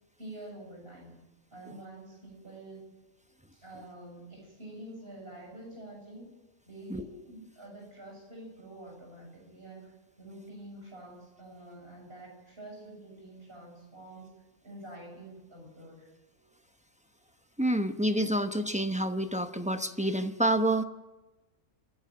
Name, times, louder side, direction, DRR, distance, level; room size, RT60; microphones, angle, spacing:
voice 1, 0.2-1.3 1.5-2.9 3.5-6.3 6.6-9.9 10.2-14.3 14.6-16.5, right 1 dB, 45° right, -1 dB, 6.9 m, -47 dB
voice 2, 17.6-20.8, right 1 dB, 5° right, 8 dB, 0.7 m, -28 dB
28.0 x 11.0 x 8.8 m, 1.1 s
omnidirectional pair, 1.3 m